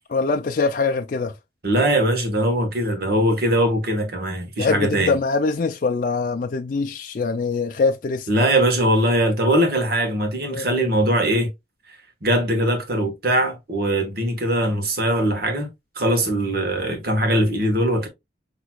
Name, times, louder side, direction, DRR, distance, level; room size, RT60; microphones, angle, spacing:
voice 1, 0.1-1.3 4.6-8.3 10.5-10.7, left 4 dB, 45° left, 0.4 m, -23 dB
voice 2, 1.6-5.2 8.3-11.5 12.2-15.7 15.9-18.1, right 1 dB, 55° right, 1.3 m, -21 dB
6.0 x 2.9 x 2.2 m
head